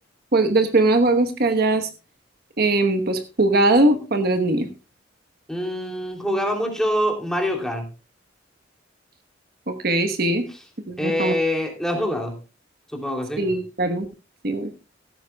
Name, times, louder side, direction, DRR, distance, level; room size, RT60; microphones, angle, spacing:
voice 1, 0.3-1.9 2.6-4.7 9.7-10.5 10.9-11.3 13.4-14.0 14.4-14.7, right 2 dB, 55° right, 7 dB, 1.1 m, -20 dB
voice 2, 5.5-7.9 10.5-10.6 11.0-12.3 12.9-13.4, equal, 5° left, 1 dB, 2.8 m, -25 dB
16.0 x 13.0 x 2.3 m, 0.29 s
head